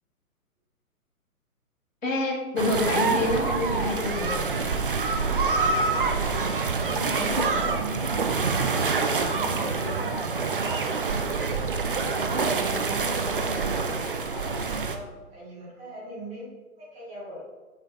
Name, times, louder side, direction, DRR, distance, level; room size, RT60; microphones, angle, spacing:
voice 1, 2.0-4.6, left 1 dB, 60° left, 0 dB, 1.6 m, -27 dB
sound 1, 2.6-15.0, right 4 dB, 40° right, 0.5 m, -26 dB
voice 2, 6.0-10.9 11.8-14.0 14.3-16.5 16.8-17.4, right 1 dB, 15° right, -7 dB, 2.2 m, -37 dB
6.3 x 5.4 x 3.7 m, 1.2 s
figure-of-eight pair, 130°, 45 cm